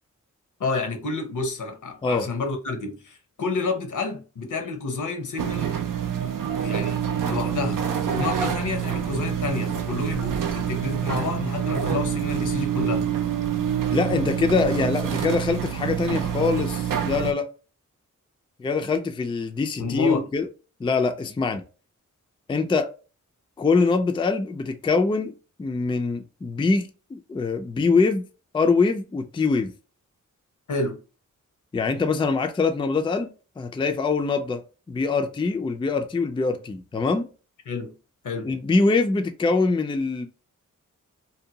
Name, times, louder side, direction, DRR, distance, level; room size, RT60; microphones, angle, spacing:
voice 1, 0.6-5.7 6.6-7.0 7.3-13.1 19.8-20.3 30.7-31.0 37.7-37.9 38.2-38.5, left 3 dB, 70° left, 0.8 m, -29 dB
sound 1, 5.4-17.3, right 9 dB, 90° right, 0.5 m, -26 dB
voice 2, 13.9-17.5 18.6-20.5 20.8-21.6 22.5-22.9 23.6-28.3 28.5-29.7 31.7-37.3 38.4-40.3, left 4 dB, 15° left, 0.3 m, -24 dB
2.7 x 2.2 x 2.7 m
wide cardioid pair, 80°, 31 cm